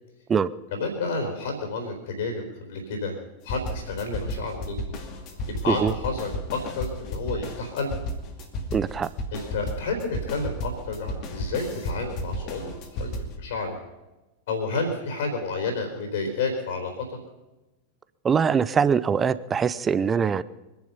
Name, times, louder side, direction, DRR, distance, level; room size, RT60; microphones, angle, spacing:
voice 1, 0.7-3.2 3.4-4.8 5.5-8.0 9.3-12.7 13.0-13.8 14.5-17.2, left 3 dB, 60° left, 3 dB, 4.0 m, -30 dB
sound 1, 3.5-13.3, left 1 dB, 40° left, 2.4 m, -33 dB
voice 2, 8.7-9.1 18.2-20.4, right 6 dB, 20° right, 17 dB, 0.7 m, -22 dB
24.5 x 10.5 x 5.5 m, 1.1 s
figure-of-eight pair, 90°, 0 cm